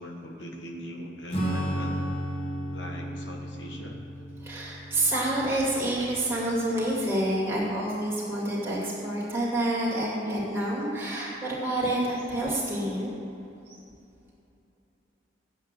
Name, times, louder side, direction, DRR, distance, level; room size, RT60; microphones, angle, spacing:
voice 1, 0.0-2.0 2.7-4.0, equal, 75° left, 1 dB, 1.2 m, -40 dB
Acoustic guitar / Strum, 1.3-7.2, equal, 30° left, 1.7 m, -34 dB
voice 2, 4.4-13.1, right 1 dB, 15° right, -6 dB, 2.4 m, -28 dB
8.3 x 7.9 x 7.6 m, 2.8 s
head